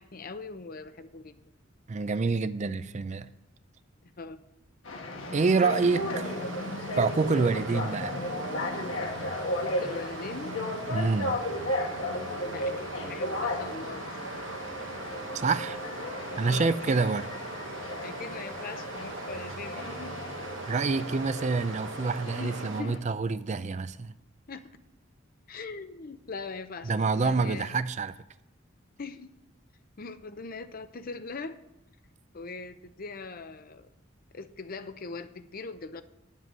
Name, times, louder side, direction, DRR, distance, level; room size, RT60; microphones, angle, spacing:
voice 1, 0.0-1.3 4.0-4.4 7.6-7.7 9.6-10.5 12.4-14.2 16.4-17.2 18.0-20.2 22.4-23.0 24.5-24.6 25.5-27.7 29.0-29.3 30.0-31.6 32.3-33.9 34.3-36.0, left 4 dB, 50° left, 11 dB, 0.7 m, -41 dB
voice 2, 1.9-3.3 5.3-6.3 7.0-8.2 10.9-11.4 15.3-15.8 16.4-17.3 20.7-24.1 26.9-28.1, right 4 dB, 35° right, 13 dB, 0.4 m, -27 dB
sound 1, 4.9-23.0, left 1 dB, 80° left, 1.7 m, -35 dB
Stream, 5.8-22.8, right 3 dB, 70° right, 1.1 m, -41 dB
9.7 x 7.5 x 7.5 m, 0.88 s
head